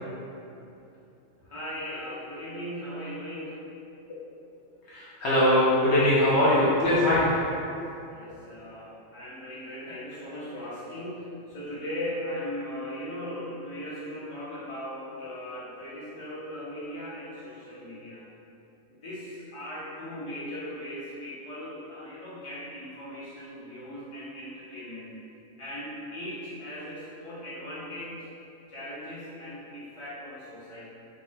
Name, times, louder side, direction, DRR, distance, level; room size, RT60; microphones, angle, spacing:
voice 1, 1.4-3.6 8.1-18.3 19.0-25.1 25.6-28.2 28.7-30.9, equal, 35° left, -9 dB, 0.5 m, -38 dB
voice 2, 4.9-7.3, left 1 dB, 70° left, -9 dB, 0.9 m, -21 dB
4.9 x 2.1 x 2.6 m, 2.8 s
omnidirectional pair, 1.3 m